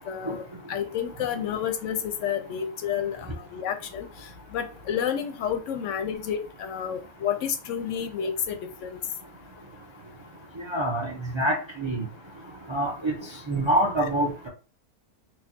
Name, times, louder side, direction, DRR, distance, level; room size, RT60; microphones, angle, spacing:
voice 1, 0.1-0.4 0.7-4.1 4.5-9.0, left 8 dB, 65° left, 7 dB, 0.8 m, -30 dB
voice 2, 10.7-11.1 11.3-12.0 12.7-13.1 13.5-14.5, right 1 dB, 40° right, -1 dB, 0.4 m, -25 dB
4.6 x 2.3 x 2.7 m, 0.36 s
omnidirectional pair, 1.5 m